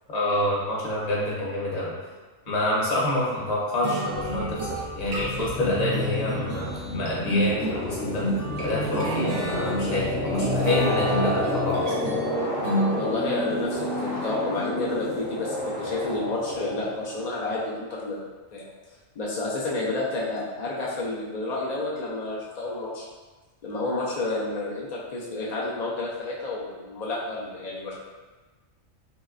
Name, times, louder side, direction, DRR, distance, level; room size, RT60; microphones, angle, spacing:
voice 1, 0.1-1.9 2.5-8.3 8.6-11.9, left 1 dB, 40° left, -6 dB, 0.7 m, -27 dB
sound 1, 3.8-13.5, equal, 90° right, 1.0 m, -30 dB
sound 2, 4.2-17.5, left 1 dB, 60° left, 1.0 m, -30 dB
voice 2, 12.9-18.2 18.5-18.6 19.2-23.1 23.6-27.9, left 2 dB, 80° left, -5 dB, 0.3 m, -30 dB
3.1 x 2.8 x 2.4 m, 1.3 s
omnidirectional pair, 1.3 m